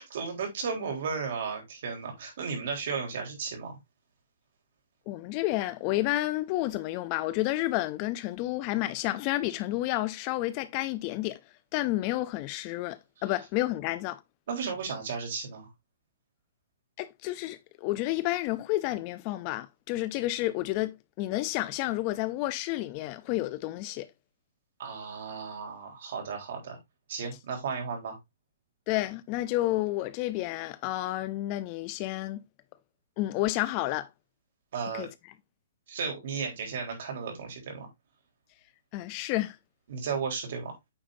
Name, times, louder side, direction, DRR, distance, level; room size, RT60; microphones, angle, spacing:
voice 1, 0.0-3.8 14.5-15.7 24.8-26.8 27.1-28.2 34.7-35.1 35.9-37.9 39.9-40.8, right 5 dB, 55° right, 3.8 m, -34 dB
voice 2, 5.1-11.4 11.7-14.2 17.0-24.1 28.9-32.4 33.2-34.1 34.9-35.1 38.9-39.6, left 17 dB, 30° left, 0.5 m, -30 dB
8.9 x 6.6 x 2.6 m
hypercardioid pair, 170°, 0 cm